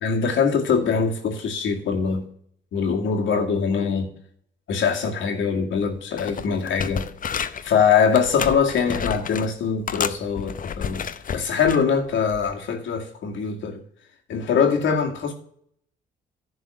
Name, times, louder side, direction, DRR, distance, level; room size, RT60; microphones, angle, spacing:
voice 1, 0.0-2.2 2.7-4.1 4.7-7.1 7.6-11.1 11.3-13.8 14.3-15.3, left 6 dB, 75° left, 2.1 m, -22 dB
sound 1, 5.8-5.9 6.2-7.7 8.1-9.5 9.9-11.8 12.3-12.5, left 7 dB, 45° left, 0.7 m, -31 dB
11.0 x 4.1 x 7.6 m
cardioid pair, 90°, 20 cm